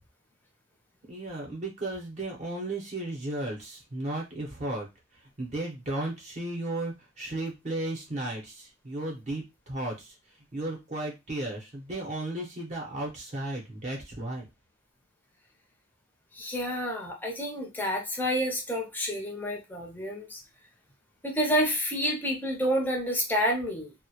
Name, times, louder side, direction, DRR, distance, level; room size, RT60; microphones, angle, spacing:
voice 1, 1.1-4.9 5.1-10.2 10.5-14.5, right 2 dB, 35° right, 0 dB, 0.6 m, -34 dB
voice 2, 16.3-20.4 21.2-23.9, equal, 10° left, 1 dB, 0.5 m, -29 dB
2.2 x 2.0 x 2.7 m, 0.23 s
head